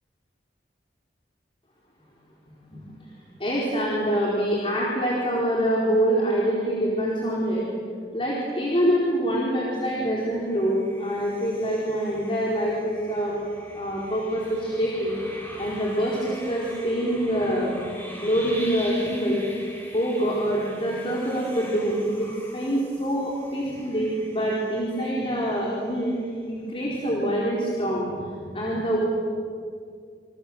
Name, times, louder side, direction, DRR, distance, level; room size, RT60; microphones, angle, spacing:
voice 1, 3.4-7.7 8.1-13.3 13.7-15.1 15.6-19.4 19.9-26.2 26.5-29.1, equal, 30° left, -4 dB, 4.7 m, -25 dB
sound 1, 10.4-26.7, equal, 15° left, 6.9 m, -44 dB
29.0 x 26.5 x 7.7 m, 2.2 s
head